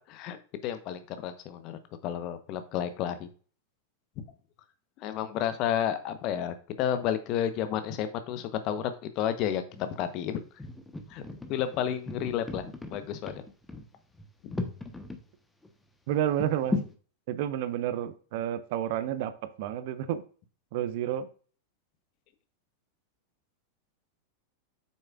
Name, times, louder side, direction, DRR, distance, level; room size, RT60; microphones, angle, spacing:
voice 1, 0.6-3.3 5.0-10.4 11.1-11.2 11.5-12.6 12.9-13.4 14.4-14.5, left 9 dB, 40° left, 10 dB, 1.0 m, -31 dB
sound 1, 9.7-10.1 10.6-15.2 15.6-15.7 16.4-17.0, left 2 dB, 10° left, 1.1 m, -36 dB
voice 2, 16.1-16.8 17.3-19.3 19.6-20.2 20.7-21.3, right 11 dB, 50° right, 12 dB, 0.7 m, -30 dB
8.5 x 6.6 x 2.5 m, 0.39 s
figure-of-eight pair, 90°, 0 cm